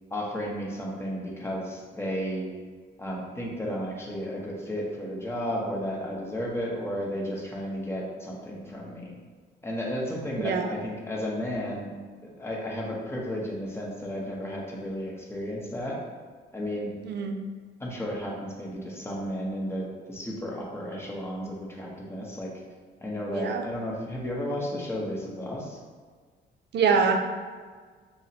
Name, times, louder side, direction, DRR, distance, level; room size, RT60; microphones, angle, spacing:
voice 1, 0.1-2.5 3.0-9.2 9.6-11.9 12.2-16.0 16.5-16.9 17.8-22.5 23.0-25.8, equal, 10° left, -3 dB, 0.8 m, -33 dB
voice 2, 10.4-10.7 17.0-17.4 23.3-23.7 26.7-27.4, right 5 dB, 60° right, 5 dB, 0.5 m, -25 dB
5.5 x 2.1 x 2.8 m, 1.5 s
cardioid pair, 90°, 20 cm